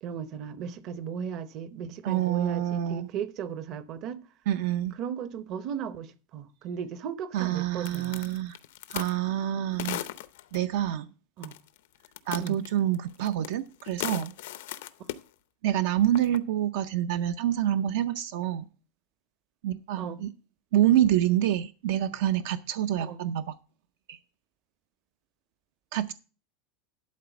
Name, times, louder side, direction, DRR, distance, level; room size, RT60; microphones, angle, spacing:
voice 1, 0.0-4.2 5.0-8.2 11.4-11.6 12.4-12.6 20.0-20.2 23.0-23.2, right 7 dB, 40° right, 0.8 m, -36 dB
voice 2, 2.0-3.1 4.5-4.9 7.3-8.6 8.9-10.1 10.5-11.1 12.3-14.3 15.6-18.7 19.6-20.3 20.7-23.6 24.1-24.2 25.9-26.1, right 11 dB, 70° right, 0.6 m, -27 dB
sound 1, 7.8-9.2 9.8-10.6 11.4-11.8 12.0-13.5 13.8-15.2 16.1-16.4, left 13 dB, 85° left, 0.6 m, -36 dB
11.5 x 4.2 x 7.0 m
supercardioid pair, 160°, 0 cm